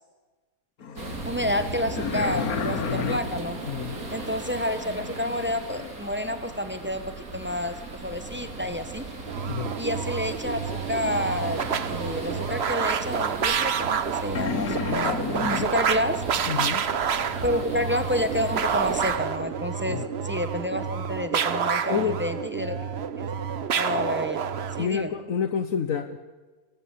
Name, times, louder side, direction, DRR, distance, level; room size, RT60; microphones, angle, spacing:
sound 1, 0.8-5.9 14.3-18.0, left 6 dB, 85° left, 1.8 m, -33 dB
sound 2, 1.0-19.2, right 2 dB, 75° right, 3.6 m, -37 dB
voice 1, 1.2-3.6 4.1-9.1 9.8-15.2 15.5-16.2 17.4-22.8 23.2-23.3 23.8-24.4 24.7-25.1, left 1 dB, 10° right, 9 dB, 1.4 m, -29 dB
voice 2, 3.7-4.0 9.4-9.8 16.5-16.8 19.9-20.0 21.9-22.2 24.8-26.2, left 7 dB, 70° left, 10 dB, 1.3 m, -28 dB
sound 3, 9.2-24.9, right 7 dB, 50° right, 1.1 m, -28 dB
27.5 x 18.0 x 8.5 m, 1.3 s
omnidirectional pair, 1.5 m